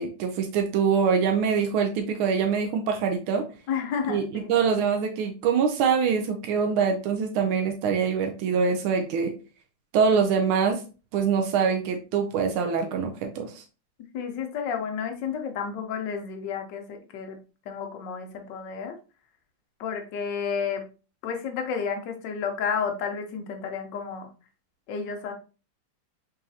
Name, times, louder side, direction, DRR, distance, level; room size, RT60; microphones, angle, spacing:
voice 1, 0.0-3.4 4.1-9.3 9.9-10.8 11.1-13.6, right 6 dB, 90° right, 4 dB, 1.5 m, -24 dB
voice 2, 3.7-4.5 14.1-17.4 17.7-18.9 19.8-20.9 21.2-24.3 24.9-25.3, left 6 dB, 70° left, 5 dB, 1.4 m, -31 dB
4.0 x 3.9 x 2.7 m, 0.33 s
omnidirectional pair, 2.2 m